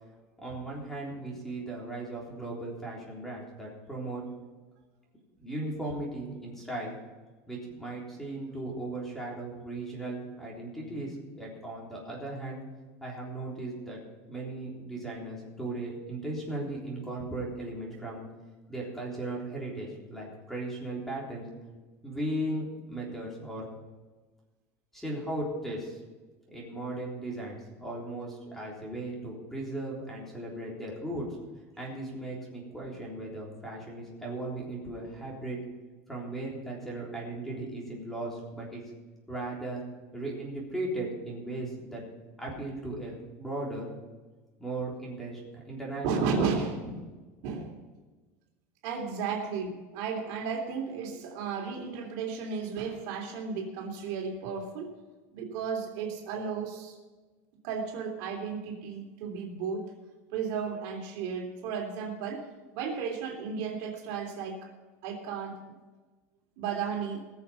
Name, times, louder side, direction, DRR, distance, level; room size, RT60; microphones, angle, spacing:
voice 1, 0.4-4.2 5.4-7.0 7.5-12.6 13.0-14.0 14.3-18.3 18.7-21.5 22.0-23.7 24.9-26.0 26.5-31.3 31.8-35.6 36.1-38.8 39.3-39.8 40.1-42.0 42.4-43.9 44.6-45.4 45.7-46.7, right 2 dB, 5° left, -3 dB, 3.7 m, -37 dB
voice 2, 46.0-47.1 47.4-47.8 48.8-54.9 55.3-57.0 57.6-59.8 60.3-62.4 62.7-64.7 65.0-65.7 66.6-67.2, right 5 dB, 65° right, 1 dB, 3.3 m, -34 dB
20.0 x 7.2 x 5.7 m, 1.3 s
cardioid pair, 155°, 7 cm